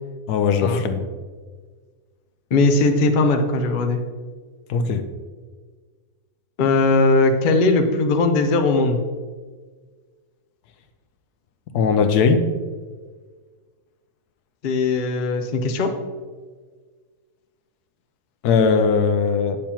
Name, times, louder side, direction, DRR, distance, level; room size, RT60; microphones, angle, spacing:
voice 1, 0.3-1.0 4.7-5.0 11.7-12.5 18.4-19.6, left 5 dB, 80° left, 8 dB, 1.2 m, -19 dB
voice 2, 2.5-4.0 6.6-9.0 14.6-15.9, left 3 dB, 50° left, 4 dB, 0.6 m, -19 dB
8.5 x 6.6 x 2.9 m, 1.5 s
omnidirectional pair, 1.7 m